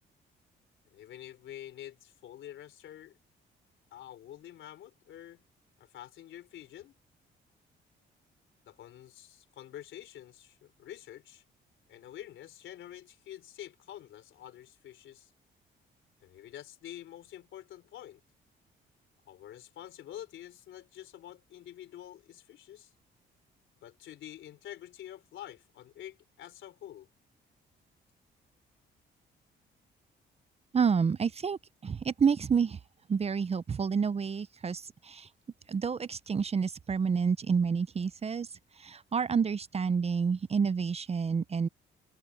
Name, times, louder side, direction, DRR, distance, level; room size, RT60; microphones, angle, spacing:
voice 1, 0.9-3.2 3.9-5.4 5.8-6.9 8.6-11.4 11.9-15.3 16.2-18.2 19.2-22.9 23.8-27.1, left 12 dB, 75° left, 3.6 m, -47 dB
voice 2, 30.7-32.8 33.1-35.3 35.7-38.5 38.8-41.7, right 6 dB, 30° right, 0.6 m, -29 dB
cardioid pair, 90°, 20 cm